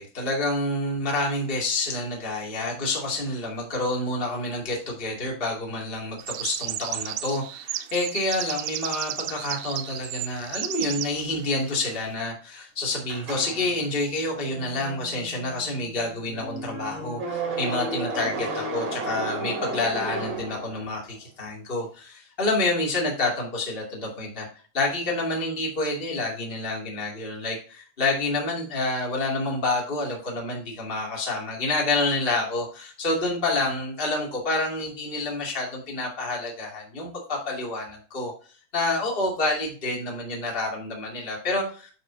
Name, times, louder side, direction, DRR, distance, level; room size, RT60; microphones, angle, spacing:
voice 1, 0.0-24.5 24.7-38.3 38.7-41.9, left 2 dB, 20° left, -2 dB, 2.0 m, -28 dB
sound 1, 6.2-11.1, right 14 dB, 85° right, 1.8 m, -33 dB
sound 2, 13.1-21.1, right 2 dB, 50° right, 3.5 m, -33 dB
9.6 x 6.2 x 2.7 m, 0.39 s
omnidirectional pair, 4.3 m